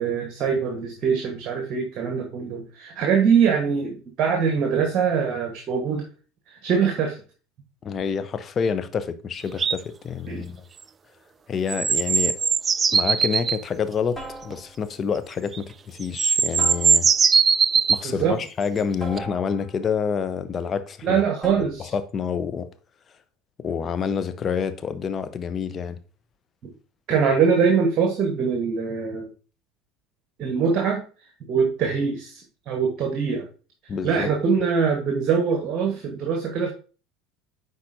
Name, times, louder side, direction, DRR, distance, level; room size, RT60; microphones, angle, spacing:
voice 1, 0.0-6.0 6.5-7.2 10.3-10.5 18.0-18.4 21.0-21.9 27.1-29.3 30.4-31.0 31.5-33.5 34.0-36.7, right 6 dB, 45° right, 1.1 m, -23 dB
voice 2, 7.8-10.6 11.5-12.4 12.9-17.1 17.9-21.2 21.6-22.7 23.6-26.0 33.9-34.3, left 6 dB, 35° left, 0.7 m, -28 dB
sound 1, 9.6-9.8 11.7-13.6 15.5-15.6 16.0-18.0 19.2-19.3, right 6 dB, 30° right, 0.3 m, -20 dB
sound 2, 12.3-12.7 14.1-14.9 16.6-17.4 19.0-19.9 21.4-22.0, right 1 dB, 15° left, 3.3 m, -39 dB
9.7 x 4.0 x 2.6 m
hypercardioid pair, 75°, 0 cm